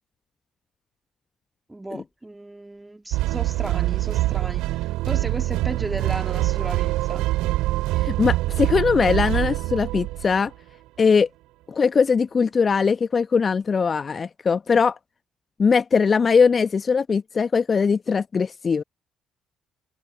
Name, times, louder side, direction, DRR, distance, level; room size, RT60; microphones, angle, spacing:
voice 1, 1.7-7.3, right 2 dB, 15° right, 2.0 m, -35 dB
sound 1, 3.1-10.5, right 17 dB, 65° right, 2.5 m, -24 dB
voice 2, 8.0-10.5 11.0-11.3 11.7-15.0 15.6-18.8, left 5 dB, 35° left, 1.0 m, -20 dB
figure-of-eight pair, 45°, 0 cm